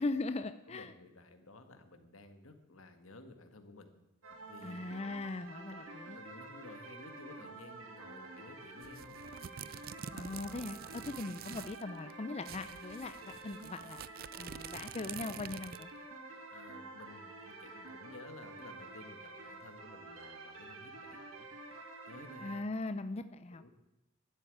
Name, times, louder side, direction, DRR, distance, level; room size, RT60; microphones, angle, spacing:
voice 1, 0.0-0.9 4.6-6.2 10.2-14.0 14.4-15.9 22.4-23.6, left 2 dB, 30° left, 10 dB, 0.5 m, -40 dB
voice 2, 0.7-3.9 4.5-4.8 5.7-9.2 16.5-21.5 22.1-22.6 23.5-23.7, left 2 dB, 85° left, 7 dB, 1.8 m, -54 dB
sound 1, 4.2-22.6, right 2 dB, 80° right, 2.2 m, -49 dB
sound 2, 8.8-11.8 12.1-12.2 12.4-16.0, right 8 dB, 45° right, 0.4 m, -47 dB
12.0 x 8.2 x 10.0 m, 0.97 s
head